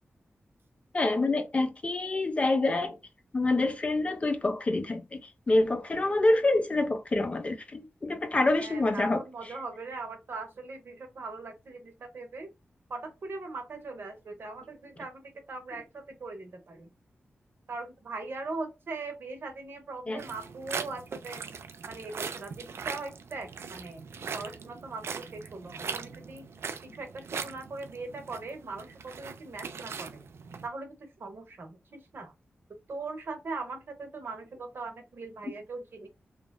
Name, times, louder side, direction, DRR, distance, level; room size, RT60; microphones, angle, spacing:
voice 1, 0.9-3.0 3.3-5.2 5.5-9.2 20.1-20.2, left 2 dB, 30° left, 0.4 m, -26 dB
voice 2, 8.6-12.5 12.9-16.9 17.7-21.4 21.9-24.0 24.3-26.5 26.8-30.2 30.6-32.3 32.9-36.1, right 3 dB, 60° right, 0.8 m, -40 dB
sound 1, 20.2-30.7, right 5 dB, 80° right, 0.3 m, -40 dB
3.0 x 2.3 x 2.2 m
wide cardioid pair, 165°, 4 cm